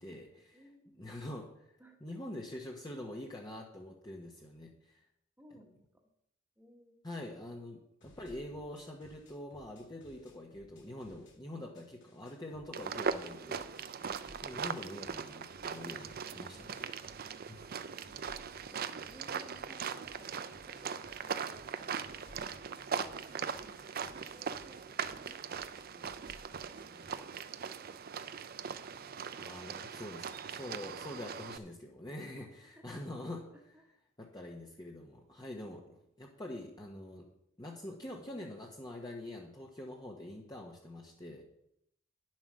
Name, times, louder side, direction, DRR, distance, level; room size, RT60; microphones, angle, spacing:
voice 1, 0.0-0.6 1.0-1.7 2.0-5.0 7.0-13.7 14.4-16.9 17.5-17.7 29.4-33.4 34.2-37.3 37.6-41.4, left 1 dB, 20° left, -1 dB, 1.1 m, -45 dB
voice 2, 0.5-1.1 1.8-2.2 5.4-6.0 6.6-7.0 14.2-14.4 18.0-18.4 18.6-22.3 22.6-27.4 32.3-33.0 33.5-34.0 35.6-35.8, equal, 10° right, 3 dB, 1.4 m, -60 dB
sound 1, 8.0-11.4 11.7-27.1, left 1 dB, 60° left, 2.1 m, -60 dB
sound 2, 12.7-31.6, right 6 dB, 45° right, 0.5 m, -40 dB
9.8 x 7.5 x 6.3 m, 0.78 s
head